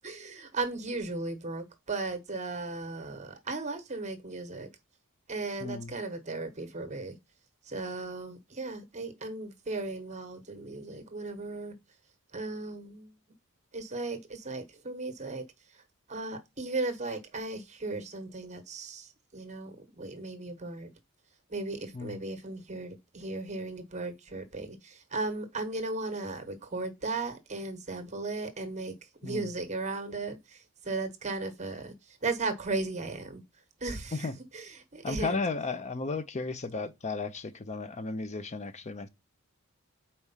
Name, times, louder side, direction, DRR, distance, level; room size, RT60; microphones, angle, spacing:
voice 1, 0.0-4.7 5.3-7.2 7.7-11.7 12.3-13.1 13.7-15.4 16.1-20.9 21.5-28.9 29.2-33.4 33.8-34.3 34.5-35.4, right 3 dB, 30° right, 1.1 m, -36 dB
voice 2, 5.6-5.9 21.9-22.2 29.2-29.5 34.1-34.3 35.0-39.1, left 3 dB, 30° left, 0.6 m, -34 dB
4.7 x 4.4 x 5.6 m
head